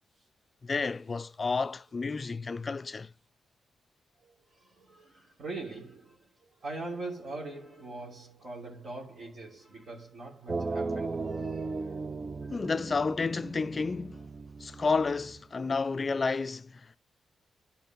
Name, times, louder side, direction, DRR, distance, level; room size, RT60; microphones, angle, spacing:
voice 1, 0.6-3.1 12.5-14.3 14.6-17.0, left 4 dB, 30° left, 0.4 m, -31 dB
voice 2, 4.2-6.3 6.6-12.0, right 2 dB, 55° right, 3.3 m, -42 dB
sound 1, 10.5-15.4, right 3 dB, 25° right, 0.5 m, -36 dB
11.0 x 4.3 x 4.5 m
cardioid pair, 110°, 0 cm